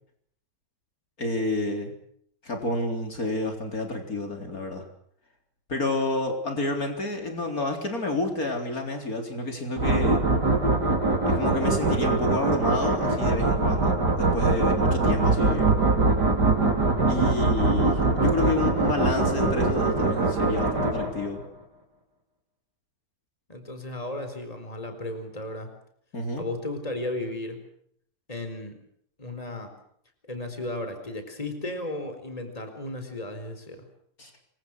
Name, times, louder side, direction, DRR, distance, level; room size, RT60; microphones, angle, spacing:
voice 1, 1.2-1.9 2.4-4.8 5.7-10.2 11.2-15.7 17.1-21.4 26.1-26.4 34.2-34.3, left 2 dB, 60° left, 4 dB, 4.4 m, -29 dB
sound 1, 9.8-21.5, right 3 dB, 85° right, 4.9 m, -23 dB
voice 2, 23.5-25.7 26.4-27.6 28.3-28.8 29.2-29.7 30.3-33.9, left 1 dB, 20° left, 7 dB, 4.5 m, -34 dB
27.5 x 24.5 x 6.5 m, 0.68 s
omnidirectional pair, 1.8 m